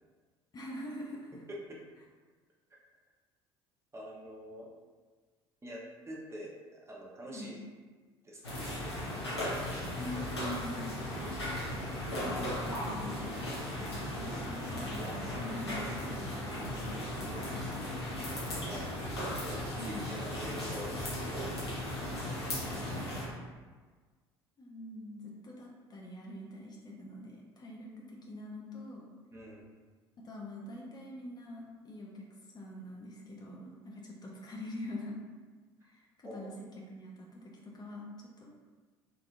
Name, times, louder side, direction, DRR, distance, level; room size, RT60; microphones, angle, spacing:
voice 1, 0.5-1.4 7.3-7.5 10.0-11.0 11.8-13.2 13.8-18.3 19.8-20.0 24.6-29.1 30.2-32.3 32.5-35.2 35.8-36.5 36.9-38.5, left 1 dB, 30° left, -2 dB, 0.6 m, -45 dB
voice 2, 1.5-1.8 3.9-4.7 5.6-7.6 8.2-8.6 18.7-21.6 21.9-23.1 29.3-29.6 36.2-36.6, right 1 dB, 20° right, -3 dB, 0.9 m, -46 dB
sound 1, 8.4-23.3, left 1 dB, 90° left, 0.8 m, -37 dB
3.8 x 2.8 x 2.5 m, 1.4 s
figure-of-eight pair, 60°, 13 cm